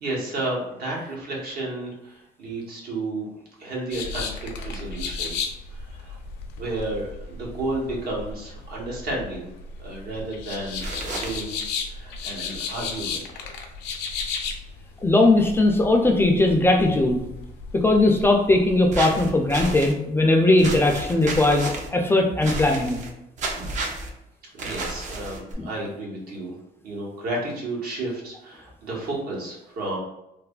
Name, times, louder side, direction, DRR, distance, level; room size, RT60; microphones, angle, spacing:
voice 1, 0.0-3.3 3.6-5.4 5.7-6.2 6.6-9.5 9.8-11.6 11.9-13.3 24.5-26.6 26.8-30.0, right 2 dB, 65° right, -3 dB, 1.0 m, -32 dB
sound 1, 3.9-19.7, left 5 dB, 85° left, 0.5 m, -35 dB
sound 2, 10.8-11.4 18.9-19.9 20.6-21.9 22.4-23.1 23.4-24.1 24.6-25.5, right 2 dB, 45° right, 0.5 m, -31 dB
voice 2, 15.0-17.2 17.7-23.0, left 2 dB, 15° left, 2 dB, 0.3 m, -19 dB
3.2 x 2.1 x 2.3 m, 0.87 s
cardioid pair, 110°, 17 cm